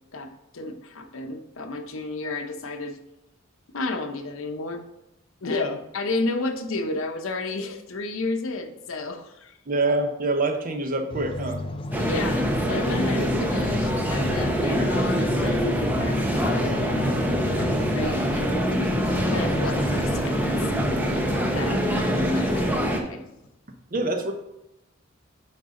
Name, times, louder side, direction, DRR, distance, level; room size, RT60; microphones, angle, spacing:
voice 1, 0.1-3.0 3.7-4.8 5.4-9.5 12.0-18.7 19.3-20.5 20.8-21.2 21.5-21.8 22.3-23.2, left 2 dB, 80° left, 6 dB, 0.8 m, -32 dB
voice 2, 9.7-11.6 23.9-24.3, right 2 dB, 45° right, 5 dB, 0.8 m, -25 dB
sound 1, 11.1-22.7, left 2 dB, 25° left, 0.4 m, -32 dB
sound 2, 11.9-23.0, equal, 10° right, 0.7 m, -25 dB
9.1 x 3.9 x 3.7 m, 0.89 s
head